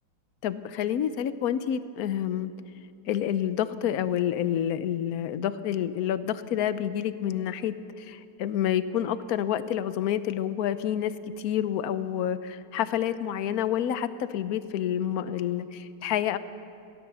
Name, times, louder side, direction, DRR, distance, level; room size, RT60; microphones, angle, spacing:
voice 1, 0.4-2.5 3.1-16.4, left 10 dB, 65° left, 13 dB, 0.9 m, -28 dB
22.5 x 17.0 x 6.9 m, 2.5 s
omnidirectional pair, 2.3 m